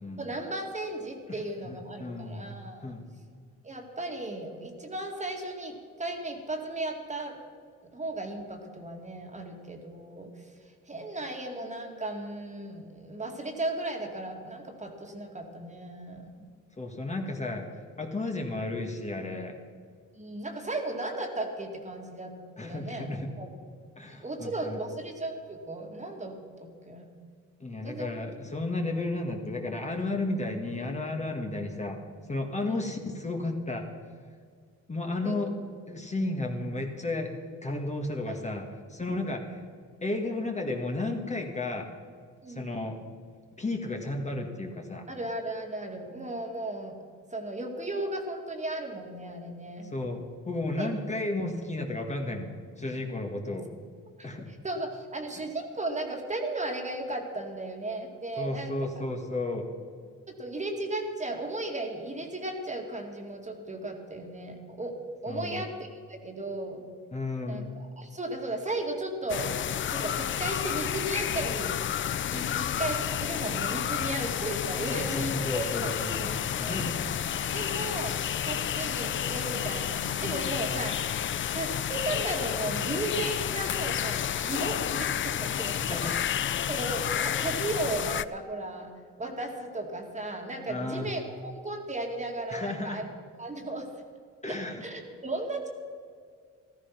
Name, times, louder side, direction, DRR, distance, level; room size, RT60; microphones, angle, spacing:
voice 1, 0.2-2.9 3.6-7.4 7.9-10.5 10.9-16.5 20.1-22.3 22.6-23.5 24.1-26.3 26.6-27.1 27.8-28.1 32.7-32.8 35.2-35.4 38.3-38.4 42.4-42.7 45.1-47.0 47.3-49.9 50.8-51.0 54.2-58.8 60.4-66.8 67.4-69.6 69.9-71.7 72.3-77.0 77.5-78.2 78.4-81.2 81.5-86.3 86.7-88.9 89.2-93.1 93.4-93.9 94.5-95.7, right 2 dB, 25° right, 3 dB, 2.2 m, -35 dB
voice 2, 1.6-2.4 2.8-3.0 16.8-17.6 18.0-19.6 22.6-23.3 24.0-24.8 27.6-32.0 32.3-33.9 34.9-35.5 35.9-37.3 37.6-38.6 38.9-39.6 40.0-41.9 42.5-43.0 43.6-45.0 49.9-53.7 54.2-54.5 58.4-59.6 65.3-65.6 67.1-67.7 74.9-76.9 77.5-77.8 80.7-80.8 85.7-86.1 90.7-91.1 92.5-93.0 94.4-94.9, left 2 dB, 25° left, 2 dB, 1.9 m, -33 dB
sound 1, 69.3-88.2, left 10 dB, 40° left, 0.5 m, -30 dB
14.0 x 14.0 x 6.0 m, 2.1 s
cardioid pair, 90°, 30 cm